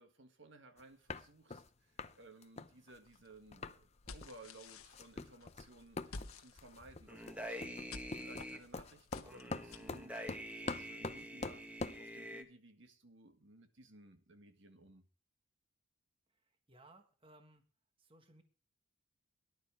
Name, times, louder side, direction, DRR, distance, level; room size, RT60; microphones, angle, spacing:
voice 1, 0.0-10.2 10.5-11.6 12.0-15.0, right 2 dB, 55° right, 7 dB, 1.7 m, -59 dB
sound 1, 0.8-0.9 1.1-1.7 2.0-2.2 2.4-3.8 4.1-4.3 4.6-12.0, left 3 dB, 30° left, 0.7 m, -45 dB
sound 2, 3.0-10.0, left 3 dB, 85° left, 1.4 m, -54 dB
sound 3, 7.1-8.6 9.3-12.4, equal, 5° right, 1.6 m, -46 dB
voice 2, 16.7-17.6 18.0-18.4, right 2 dB, 25° right, 5 dB, 1.6 m, -61 dB
18.5 x 11.5 x 3.5 m, 0.37 s
head